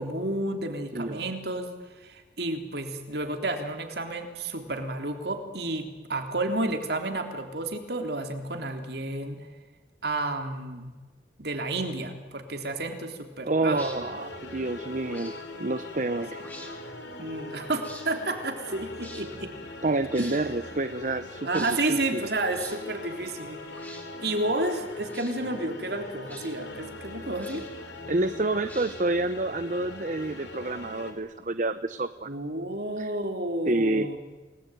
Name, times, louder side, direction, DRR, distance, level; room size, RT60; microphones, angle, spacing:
voice 1, 0.0-1.7 2.0-9.4 10.0-10.9 11.4-13.8 17.2-19.5 20.2-20.3 21.4-23.6 23.9-27.6 32.3-34.2, right 2 dB, 55° right, 5 dB, 3.5 m, -31 dB
voice 2, 0.9-1.3 13.4-16.4 19.8-22.3 28.1-32.3 33.0-33.2 33.7-34.1, right 2 dB, 40° right, 12 dB, 0.8 m, -28 dB
sound 1, 13.7-31.1, left 2 dB, 75° left, 4.9 m, -41 dB
sound 2, 13.7-14.0 15.1-15.4 16.4-16.7 17.8-18.1 19.0-19.2 20.1-20.4 21.5-21.8 22.5-22.8 23.7-24.1 25.0-25.4 26.3-26.5 27.4-27.8 28.6-29.2, left 1 dB, 10° left, 4.2 m, -45 dB
29.5 x 19.5 x 9.2 m, 1.3 s
head